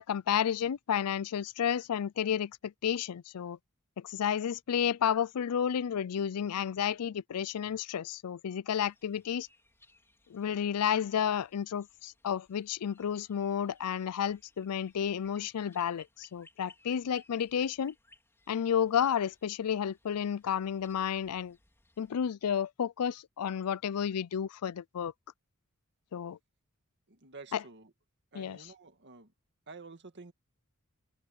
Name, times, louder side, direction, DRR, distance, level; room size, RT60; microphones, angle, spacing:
voice 1, 0.0-3.6 4.0-9.5 10.3-17.9 18.5-21.6 22.0-25.1 26.1-26.4 27.5-27.6 28.3-28.7, left 8 dB, 85° left, 0.4 m, -31 dB
sound 1, 8.8-22.3, left 2 dB, 10° left, 3.4 m, -63 dB
voice 2, 27.1-27.9 28.3-29.3 29.7-30.3, right 3 dB, 50° right, 2.0 m, -50 dB
head